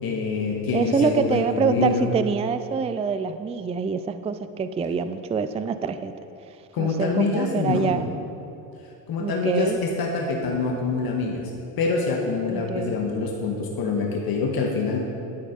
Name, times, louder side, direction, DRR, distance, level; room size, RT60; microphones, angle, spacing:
voice 1, 0.0-2.1 6.7-8.0 9.1-11.4 11.8-15.0, left 4 dB, 45° left, 0 dB, 1.7 m, -25 dB
voice 2, 0.7-6.1 6.8-8.0 9.2-9.8 12.5-13.0, right 5 dB, 15° right, 11 dB, 0.4 m, -25 dB
12.0 x 8.5 x 5.3 m, 2.6 s
hypercardioid pair, 75°, 49 cm